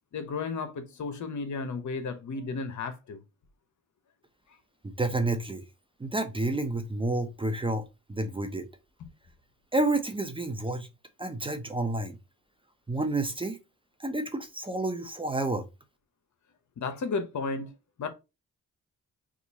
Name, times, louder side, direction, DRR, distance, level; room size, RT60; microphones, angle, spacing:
voice 1, 0.1-3.2 16.8-17.7 18.0-18.1, left 4 dB, 60° left, 0.8 m, -33 dB
voice 2, 5.0-5.6 6.0-7.8 8.1-8.7 9.7-10.9 11.2-12.2 12.9-13.6 14.0-15.7, right 2 dB, 15° right, 0.6 m, -29 dB
2.9 x 2.4 x 4.0 m
cardioid pair, 70°, 32 cm